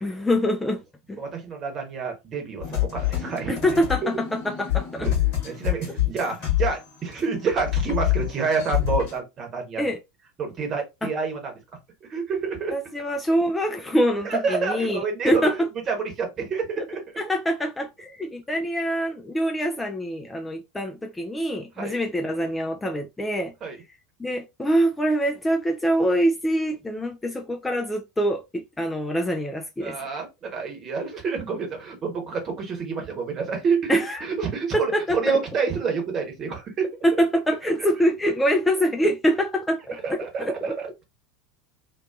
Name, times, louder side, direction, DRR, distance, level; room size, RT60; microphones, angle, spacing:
voice 1, 0.0-0.8 1.1-1.2 3.5-5.1 9.8-10.0 11.0-11.1 12.7-15.7 16.8-16.9 17.2-23.5 24.2-30.0 33.9-34.2 34.9-35.4 37.0-40.6, equal, 10° left, 0.3 m, -25 dB
voice 2, 1.2-3.5 5.0-5.2 5.4-9.9 10.4-11.5 12.0-12.7 14.2-15.5 15.9-17.0 21.8-22.0 23.6-23.8 29.8-36.9 39.9-40.9, right 5 dB, 30° right, 1.0 m, -28 dB
sound 1, 2.6-7.3 7.5-9.2, left 15 dB, 50° left, 1.0 m, -26 dB
2.5 x 2.2 x 2.3 m
figure-of-eight pair, 80°, 0 cm